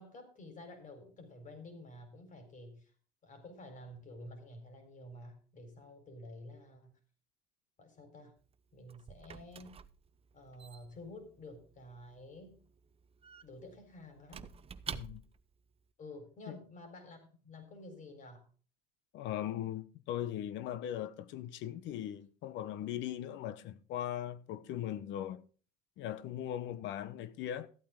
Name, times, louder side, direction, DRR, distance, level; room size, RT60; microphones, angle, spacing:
voice 1, 0.0-2.9 3.2-7.0 7.8-8.3 8.7-9.8 10.3-12.6 13.4-14.5 16.0-18.5, left 1 dB, 40° left, 4.3 m, -51 dB
Squeak / Wood, 8.4-15.5, right 7 dB, 30° right, 0.7 m, -50 dB
voice 2, 14.9-15.2 16.5-16.6 19.1-25.4 26.0-27.7, left 11 dB, 65° left, 1.0 m, -39 dB
14.0 x 8.7 x 3.7 m
supercardioid pair, 95°, 21 cm